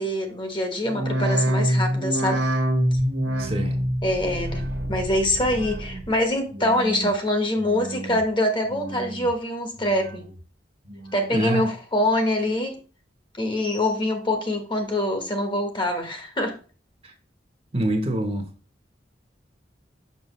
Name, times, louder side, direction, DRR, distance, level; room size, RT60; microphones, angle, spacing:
voice 1, 0.0-2.4 4.0-10.3 11.1-12.8 13.4-16.6, left 1 dB, 25° left, 1.1 m, -24 dB
sound 1, 0.8-6.2 6.5-7.1 7.6-8.2 8.7-9.3 9.8-10.4 10.9-11.5 12.0-12.1, equal, 90° right, 1.3 m, -27 dB
voice 2, 3.4-3.8 11.3-11.6 17.0-17.1 17.7-18.5, right 1 dB, 35° right, 0.9 m, -25 dB
5.9 x 5.6 x 3.0 m
head